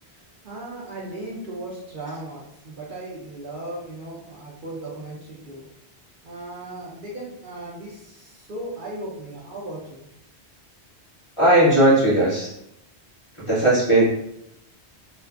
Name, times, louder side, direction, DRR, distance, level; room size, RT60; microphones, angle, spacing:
voice 1, 0.1-5.7 6.2-10.0, right 1 dB, 55° right, -5 dB, 0.7 m, -37 dB
voice 2, 11.4-12.5 13.4-14.1, right 1 dB, 35° left, -8 dB, 0.7 m, -17 dB
2.4 x 2.3 x 2.3 m, 0.81 s
omnidirectional pair, 1.1 m